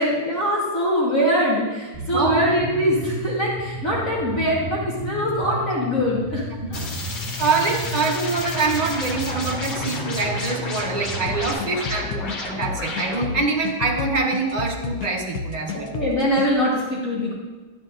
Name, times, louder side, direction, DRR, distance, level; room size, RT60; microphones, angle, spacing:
voice 1, 0.0-6.4 6.7-6.8 15.7-17.3, equal, 45° left, -6 dB, 1.7 m, -23 dB
Bass guitar, 1.9-11.5, right 1 dB, ahead, 2.7 m, -33 dB
voice 2, 2.1-2.4 7.4-15.9, right 3 dB, 25° right, -2 dB, 0.9 m, -24 dB
sound 1, 6.7-13.5, left 3 dB, 65° left, 2.0 m, -32 dB
sound 2, 11.3-16.5, left 6 dB, 80° left, 0.8 m, -31 dB
12.0 x 9.0 x 2.5 m, 1.2 s
omnidirectional pair, 2.2 m